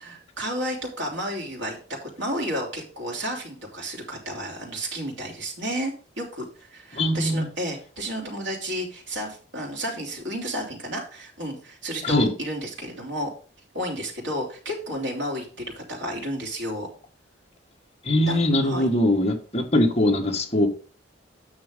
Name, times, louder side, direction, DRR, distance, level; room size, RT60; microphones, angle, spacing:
voice 1, 0.0-13.3 13.7-16.9 18.3-18.9, equal, 80° right, 3.1 m, -32 dB
voice 2, 6.9-7.4 12.0-12.3 18.1-20.7, left 1 dB, 30° left, 1.7 m, -21 dB
9.1 x 6.3 x 3.8 m
head